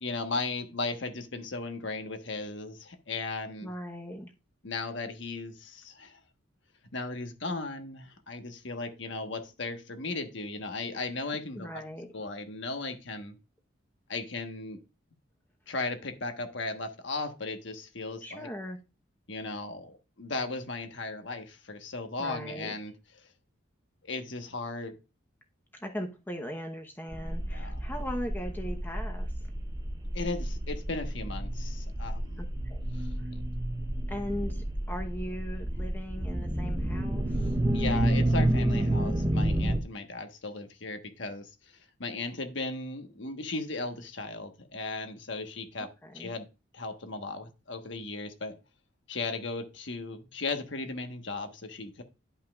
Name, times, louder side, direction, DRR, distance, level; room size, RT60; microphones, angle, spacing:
voice 1, 0.0-3.7 4.6-6.2 6.9-11.8 12.1-13.3 14.1-14.8 15.7-18.5 19.3-22.9 24.0-25.0 27.5-27.8 30.1-32.4 32.9-33.4 37.7-46.5 46.7-48.6 49.1-52.0, left 3 dB, 65° left, 1.2 m, -36 dB
voice 2, 3.6-4.3 11.6-12.1 18.2-18.8 22.2-22.8 25.7-29.3 32.4-32.8 33.2-33.3 34.1-37.4 45.8-46.3, equal, 10° left, 0.9 m, -39 dB
sound 1, 27.1-39.8, right 1 dB, 20° right, 0.7 m, -30 dB
11.5 x 5.6 x 2.4 m
head